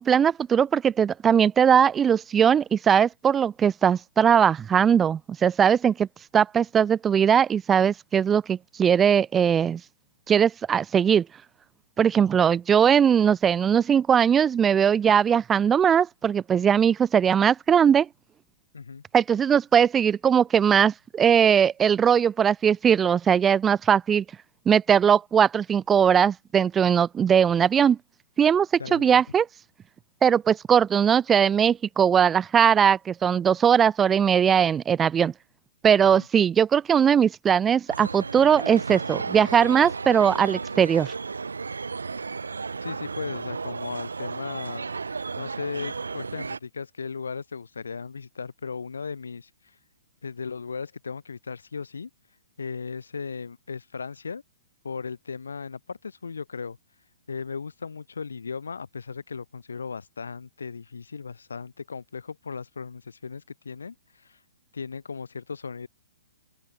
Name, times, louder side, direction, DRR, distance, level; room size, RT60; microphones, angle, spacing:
voice 1, 0.0-6.1 6.3-9.8 10.3-11.3 12.0-18.1 19.1-24.2 24.7-28.0 28.4-29.5 30.2-35.3 35.8-41.1, right 8 dB, 15° right, 1.1 m, -20 dB
voice 2, 28.8-29.2 36.0-36.3 42.8-44.8 45.4-49.5 50.2-52.1 52.6-54.4 54.8-56.8 57.3-64.4 64.7-65.9, left 5 dB, 80° left, 2.0 m, -36 dB
sound 1, 37.9-46.6, right 4 dB, 80° right, 6.8 m, -34 dB
open air
hypercardioid pair, 125°, 0 cm